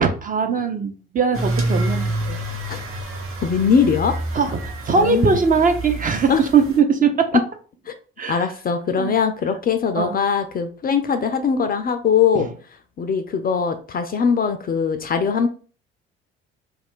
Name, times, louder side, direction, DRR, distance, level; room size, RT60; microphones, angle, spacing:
voice 1, 0.0-2.0 2.3-2.4 4.3-7.3 8.2-8.5 9.0-9.1 10.0-10.2 12.3-12.5, right 5 dB, 25° right, 6 dB, 0.5 m, -20 dB
sound 1, 1.3-6.8, right 1 dB, 45° right, 0.9 m, -28 dB
voice 2, 3.4-4.2 4.9-5.3 6.3-6.4 8.3-12.5 13.0-15.5, left 6 dB, 30° left, 8 dB, 0.4 m, -21 dB
2.4 x 2.2 x 3.5 m, 0.39 s
figure-of-eight pair, 50°, 30 cm